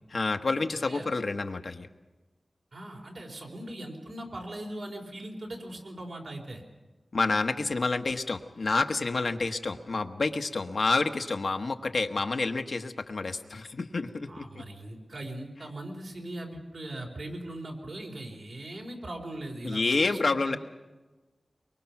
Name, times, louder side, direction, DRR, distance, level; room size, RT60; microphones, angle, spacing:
voice 1, 0.1-1.9 7.1-14.6 19.6-20.6, left 3 dB, 75° left, 7 dB, 1.1 m, -29 dB
voice 2, 2.7-6.6 14.3-20.6, right 1 dB, 75° right, 0 dB, 4.1 m, -40 dB
23.5 x 23.0 x 5.9 m, 1.2 s
wide cardioid pair, 65°, 0 cm